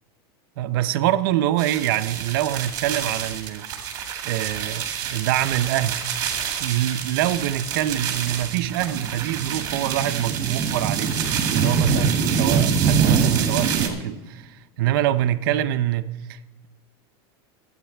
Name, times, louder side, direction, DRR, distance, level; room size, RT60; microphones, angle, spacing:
voice 1, 0.6-3.9 4.2-6.0 6.6-11.1 11.5-16.7, right 13 dB, 55° right, 0.6 m, -25 dB
sound 1, 1.6-13.9, right 6 dB, 30° right, 2.1 m, -25 dB
25.0 x 8.8 x 3.4 m
supercardioid pair, 170°, 13 cm